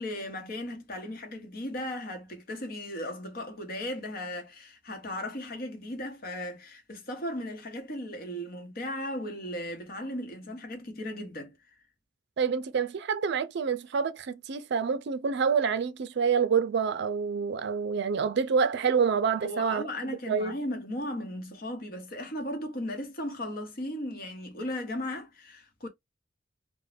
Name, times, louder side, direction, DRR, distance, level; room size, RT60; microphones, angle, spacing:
voice 1, 0.0-11.6 19.4-25.9, left 1 dB, 50° left, 0.8 m, -36 dB
voice 2, 12.4-20.5, right 6 dB, 60° right, 0.4 m, -27 dB
2.5 x 2.1 x 3.2 m
head